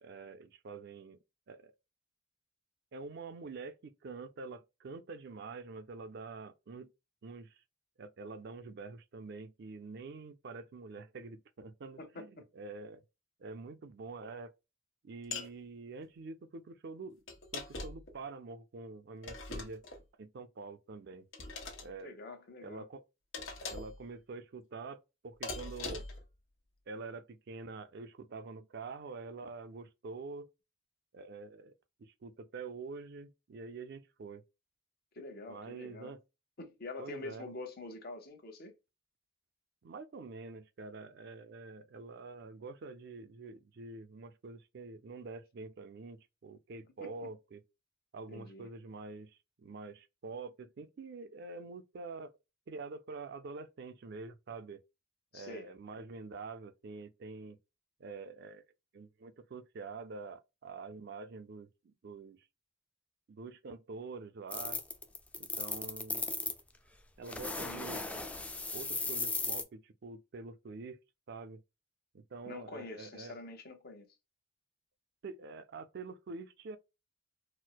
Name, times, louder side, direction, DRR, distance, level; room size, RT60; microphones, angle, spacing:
voice 1, 0.0-1.2 1.5-1.7 2.9-6.9 7.2-7.6 8.0-13.0 13.4-14.5 15.0-17.2 17.5-19.8 20.2-21.3 21.8-22.2 22.6-23.0 23.4-26.0 26.9-30.5 31.1-34.4 35.5-36.2 37.0-37.5 39.8-47.6 48.1-52.3 52.7-54.8 55.3-57.6 58.0-58.6 58.9-62.4 63.3-64.8 65.4-66.2 67.2-68.0 68.7-71.0 71.3-71.6 72.1-73.3 75.2-76.8, right 4 dB, 60° right, 0.4 m, -46 dB
sound 1, 15.3-15.5 17.3-18.1 19.2-20.0 21.3-21.9 23.3-24.0 25.4-26.2, left 3 dB, 80° left, 1.2 m, -41 dB
voice 2, 22.0-22.8 35.1-36.1 36.6-38.7 47.0-47.3 48.3-48.7 55.3-55.7 67.5-68.0 72.4-74.1, left 2 dB, 55° left, 0.9 m, -46 dB
sound 2, 64.5-66.6 67.3-69.6, left 3 dB, 5° left, 0.4 m, -36 dB
4.4 x 2.1 x 2.2 m
head